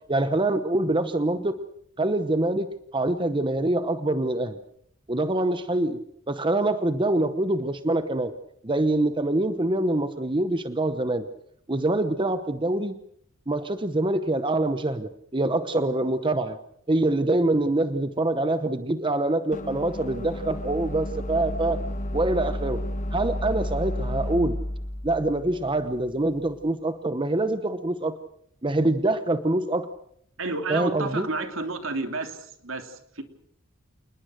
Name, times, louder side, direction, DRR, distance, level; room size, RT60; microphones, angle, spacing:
voice 1, 0.1-1.6 2.0-4.6 5.1-6.0 6.3-8.3 8.6-11.3 11.7-12.9 13.5-16.6 16.9-21.8 22.1-22.8 23.1-24.6 25.0-28.2 28.6-29.9 30.7-31.3, right 2 dB, 25° right, 11 dB, 0.9 m, -25 dB
sound 1, 19.5-26.6, left 1 dB, 35° left, 1.1 m, -32 dB
voice 2, 30.4-33.2, right 3 dB, 70° right, 6 dB, 3.1 m, -31 dB
28.0 x 20.5 x 6.5 m, 0.71 s
head